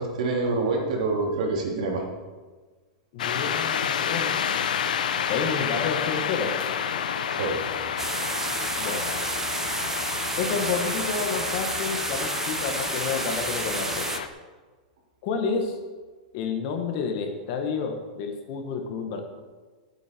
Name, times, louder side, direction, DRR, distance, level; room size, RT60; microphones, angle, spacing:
voice 1, 0.0-2.0 7.3-7.6, right 3 dB, 60° right, 0 dB, 3.4 m, -26 dB
voice 2, 3.1-4.3 5.3-6.6 8.8-9.1 10.4-14.1 15.2-15.8 16.3-19.2, left 5 dB, 40° left, 5 dB, 1.7 m, -30 dB
sound 1, 3.2-14.3, left 8 dB, 85° left, 1.0 m, -29 dB
sound 2, 8.0-14.2, right 4 dB, 10° right, 0.6 m, -31 dB
18.0 x 8.7 x 4.6 m, 1.4 s
supercardioid pair, 170°, 4 cm